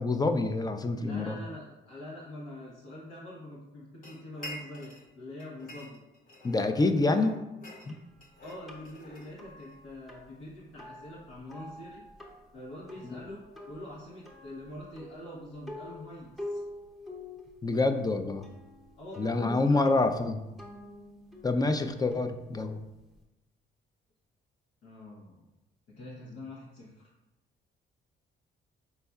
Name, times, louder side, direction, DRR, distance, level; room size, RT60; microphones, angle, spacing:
voice 1, 0.0-1.4 6.4-7.4 7.9-8.0 13.0-13.2 17.6-18.5 19.2-20.4 21.4-22.8, left 3 dB, 20° left, 8 dB, 0.4 m, -27 dB
voice 2, 1.0-6.0 6.7-7.1 8.4-12.0 12.5-13.4 13.7-16.6 19.0-19.8 24.8-25.5 26.0-27.1, left 1 dB, 85° left, -5 dB, 0.9 m, -44 dB
sound 1, 4.0-5.1 5.4-6.7 7.1-9.8, left 1 dB, 45° left, 1.0 m, -47 dB
sound 2, 7.9-23.2, left 1 dB, ahead, 0.8 m, -47 dB
5.5 x 4.0 x 2.3 m, 0.97 s
cardioid pair, 90°, 20 cm